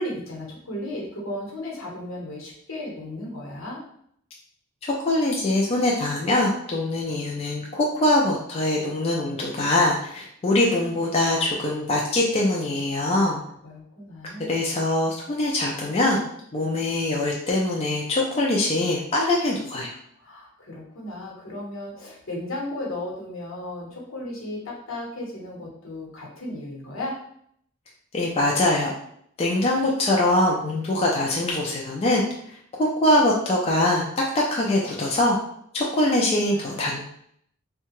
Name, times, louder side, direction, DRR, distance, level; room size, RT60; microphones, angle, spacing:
voice 1, 0.0-3.8 13.1-13.4 13.6-14.7 20.2-27.2 36.5-37.0, left 1 dB, 75° left, -2 dB, 0.9 m, -35 dB
voice 2, 4.8-13.4 14.5-16.2 16.5-19.9 28.1-28.9 29.4-32.2 33.0-35.4 35.7-37.0, left 1 dB, 30° left, -2 dB, 0.3 m, -23 dB
2.7 x 2.2 x 2.9 m, 0.68 s
head